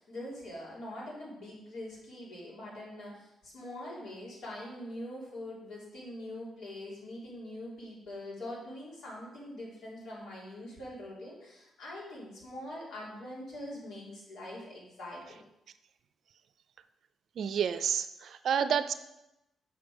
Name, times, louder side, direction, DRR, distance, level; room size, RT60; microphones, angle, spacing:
voice 1, 0.0-15.4, left 1 dB, 80° left, -5 dB, 3.1 m, -43 dB
voice 2, 17.4-18.9, right 8 dB, 65° right, 12 dB, 0.4 m, -29 dB
6.1 x 5.8 x 4.8 m, 0.91 s
cardioid pair, 95°, 0 cm